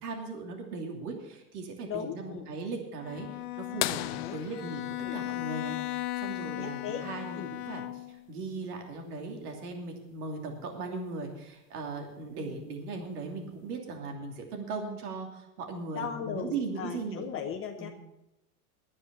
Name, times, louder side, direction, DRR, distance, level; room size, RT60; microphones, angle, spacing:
voice 1, 0.0-4.0 4.3-4.8 5.1-17.3 17.8-17.9, right 3 dB, 75° right, 2 dB, 3.0 m, -38 dB
voice 2, 1.9-2.5 3.9-4.4 5.0-5.2 6.5-7.1 7.4-7.5 12.4-12.7 15.9-17.9, left 8 dB, 30° left, 4 dB, 1.0 m, -38 dB
Bowed string instrument, 3.0-8.3, left 16 dB, 75° left, 1.0 m, -37 dB
sound 1, 3.8-6.3 8.2-8.3 10.5-10.6 12.3-12.6 13.4-13.5, left 16 dB, 50° left, 0.7 m, -36 dB
10.5 x 9.7 x 6.9 m, 0.90 s
supercardioid pair, 130°, 45 cm